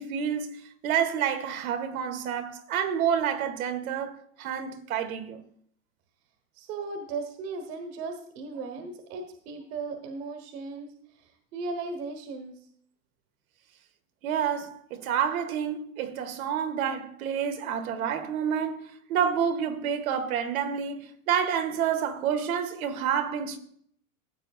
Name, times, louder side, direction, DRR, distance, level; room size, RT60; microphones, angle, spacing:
voice 1, 0.0-5.4 14.2-23.6, right 8 dB, 85° right, 1.6 m, -29 dB
voice 2, 6.5-12.6, right 3 dB, 45° right, 1.4 m, -37 dB
15.0 x 8.1 x 2.4 m
supercardioid pair, 170°, 41 cm